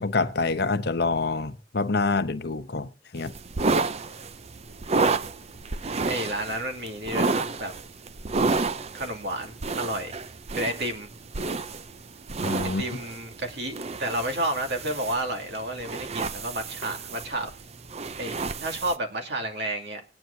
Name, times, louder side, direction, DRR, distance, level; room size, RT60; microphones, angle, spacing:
voice 1, 0.0-3.3 12.4-12.8, left 3 dB, 65° left, 0.9 m, -26 dB
sound 1, 3.2-19.0, right 3 dB, 35° right, 0.6 m, -30 dB
voice 2, 3.8-4.1 6.1-7.7 8.9-10.2 10.5-11.1 12.8-17.5 18.2-20.0, right 1 dB, 70° right, 2.6 m, -31 dB
20.0 x 9.4 x 2.8 m
head